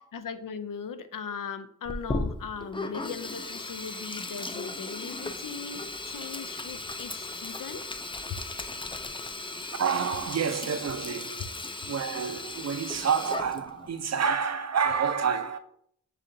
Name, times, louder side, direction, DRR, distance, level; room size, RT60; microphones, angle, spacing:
voice 1, 0.2-7.8, left 6 dB, 75° left, 0.5 m, -39 dB
Sink (filling or washing), 1.9-13.9, left 2 dB, 15° left, 0.3 m, -37 dB
voice 2, 9.8-11.5 11.9-15.6, right 6 dB, 55° right, 0.5 m, -28 dB
6.5 x 2.7 x 2.6 m
cardioid pair, 55°, 33 cm